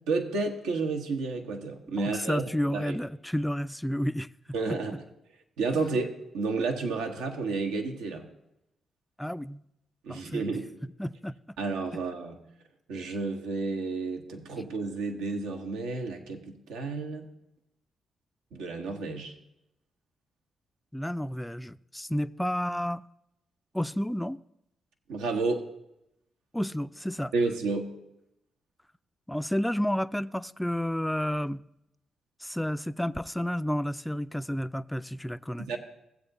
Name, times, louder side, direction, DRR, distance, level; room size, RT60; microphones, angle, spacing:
voice 1, 0.1-2.4 2.7-3.0 4.5-4.9 5.6-8.3 10.0-10.7 11.6-12.3 12.9-17.3 18.5-19.3 25.1-25.6 27.3-27.9 35.6-35.8, right 3 dB, 90° right, 1.0 m, -31 dB
voice 2, 2.0-4.3 4.7-5.0 9.2-9.6 10.1-10.4 11.0-11.3 20.9-23.0 23.7-24.4 26.5-27.3 29.3-31.6 32.4-35.7, equal, 5° left, 0.3 m, -31 dB
15.5 x 7.8 x 2.6 m
supercardioid pair, 55°, 0 cm